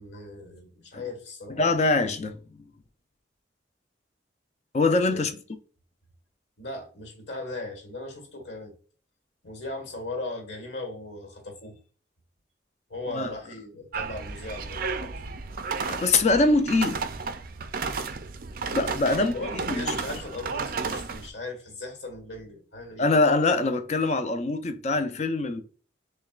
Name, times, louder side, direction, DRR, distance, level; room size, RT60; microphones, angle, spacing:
voice 1, 0.0-1.6 5.1-5.3 6.6-8.7 9.4-11.8 12.9-15.1 19.1-23.1, left 2 dB, 65° left, 1.5 m, -38 dB
voice 2, 1.6-2.4 4.7-5.3 13.1-13.3 15.9-17.0 18.7-19.3 19.7-19.9 23.0-25.6, left 3 dB, 40° left, 0.5 m, -23 dB
sound 1, 13.9-21.3, right 4 dB, 50° right, 0.4 m, -33 dB
6.3 x 2.2 x 2.4 m
head